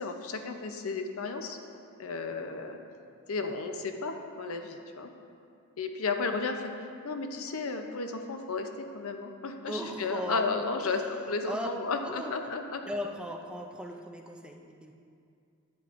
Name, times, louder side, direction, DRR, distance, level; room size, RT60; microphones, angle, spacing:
voice 1, 0.0-1.6 2.0-2.8 3.3-5.1 5.8-6.7 7.0-8.7 8.9-12.8, left 4 dB, 85° left, 5 dB, 0.6 m, -33 dB
voice 2, 9.7-10.4 10.8-11.2 11.5-11.7 12.0-12.3 12.8-14.9, equal, 5° right, 3 dB, 0.4 m, -37 dB
10.5 x 8.4 x 2.5 m, 2.4 s
head